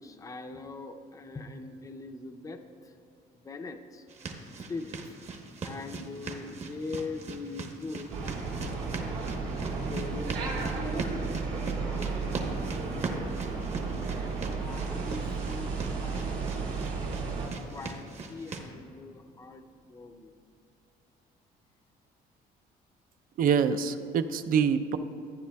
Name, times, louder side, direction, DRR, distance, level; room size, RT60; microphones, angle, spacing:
voice 1, 0.0-2.9 3.3-4.0 4.7-5.2 5.6-8.6 9.3-13.6 14.6-16.9 17.7-20.3, left 3 dB, 20° left, 6 dB, 0.5 m, -42 dB
sound 1, 4.1-18.7, right 3 dB, 40° right, 1.0 m, -40 dB
sound 2, 8.1-17.5, right 4 dB, 80° right, 2.3 m, -33 dB
voice 2, 23.4-25.0, right 7 dB, 55° right, 10 dB, 0.5 m, -25 dB
14.5 x 9.4 x 2.3 m, 2.6 s
cardioid pair, 110°, 17 cm